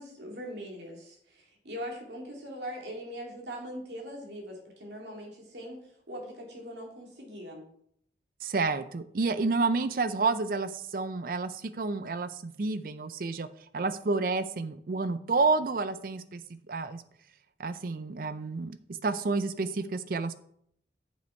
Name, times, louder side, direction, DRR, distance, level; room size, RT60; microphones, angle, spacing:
voice 1, 0.0-5.8 6.1-7.6 19.8-19.9, equal, 80° right, 0 dB, 2.3 m, -41 dB
voice 2, 8.4-13.5 13.7-16.4 16.7-17.0 17.6-18.8 19.0-20.3, right 3 dB, 50° right, 13 dB, 0.5 m, -29 dB
8.0 x 5.5 x 4.5 m, 0.68 s
head